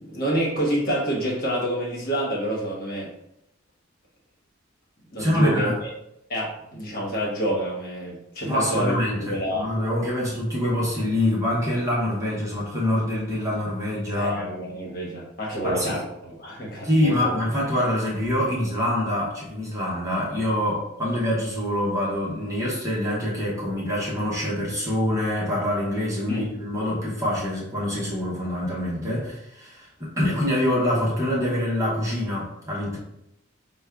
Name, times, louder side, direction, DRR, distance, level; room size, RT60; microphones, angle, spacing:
voice 1, 0.0-3.1 5.1-5.9 6.3-8.9 9.2-9.7 14.1-17.3 26.3-26.5, right 1 dB, 45° left, -3 dB, 1.2 m, -28 dB
voice 2, 5.2-5.7 8.4-14.5 15.6-16.0 16.8-33.0, left 1 dB, 15° right, -6 dB, 0.9 m, -25 dB
5.1 x 2.3 x 3.4 m, 0.79 s
head